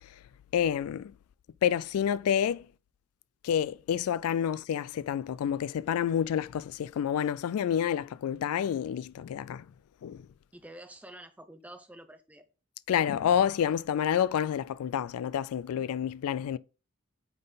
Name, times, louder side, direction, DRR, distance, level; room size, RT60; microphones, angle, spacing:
voice 1, 0.5-1.1 1.6-2.7 3.4-9.7 10.0-10.2 12.9-16.6, left 9 dB, 85° left, 0.3 m, -28 dB
voice 2, 10.5-12.4, right 1 dB, 5° right, 0.6 m, -48 dB
8.7 x 3.9 x 4.0 m
head